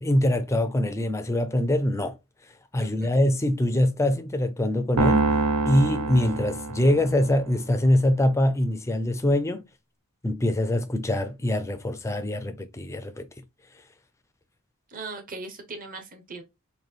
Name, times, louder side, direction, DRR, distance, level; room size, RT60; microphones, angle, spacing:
voice 1, 0.0-2.1 2.7-5.3 5.7-9.6 10.2-13.3, left 1 dB, 15° left, 0.4 m, -24 dB
voice 2, 2.8-3.1 14.9-16.4, right 3 dB, 40° right, 1.0 m, -39 dB
sound 1, 5.0-7.4, right 3 dB, 90° right, 0.7 m, -25 dB
4.0 x 2.6 x 3.3 m
head